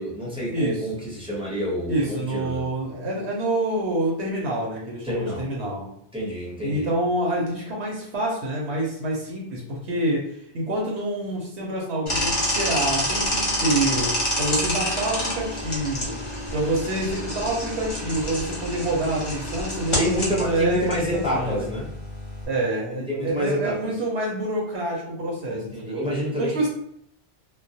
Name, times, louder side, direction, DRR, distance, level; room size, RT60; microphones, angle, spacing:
voice 1, 0.0-2.7 5.0-5.4 6.1-6.9 18.3-18.4 20.0-21.9 23.1-23.9 25.5-26.7, equal, 5° right, -6 dB, 0.6 m, -28 dB
voice 2, 0.5-0.9 1.9-5.9 6.6-14.1 14.4-16.2 16.5-21.7 22.5-26.0 26.4-26.7, right 1 dB, 85° right, -3 dB, 0.9 m, -27 dB
sound 1, 12.1-22.5, left 1 dB, 35° left, 0.7 m, -28 dB
2.3 x 2.0 x 2.6 m, 0.74 s
omnidirectional pair, 1.1 m